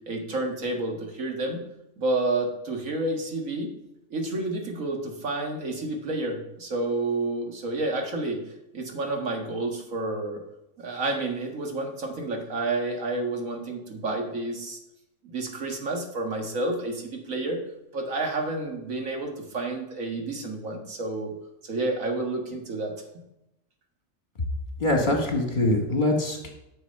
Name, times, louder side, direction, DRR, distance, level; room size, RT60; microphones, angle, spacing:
voice 1, 0.1-1.6 2.0-3.7 4.1-8.4 8.7-10.4 10.8-14.8 15.2-17.6 17.9-21.3 21.6-22.9, right 2 dB, 90° right, 2 dB, 2.0 m, -30 dB
voice 2, 24.8-26.5, left 1 dB, 40° left, 2 dB, 1.9 m, -23 dB
9.8 x 6.6 x 5.4 m, 0.88 s
omnidirectional pair, 1.3 m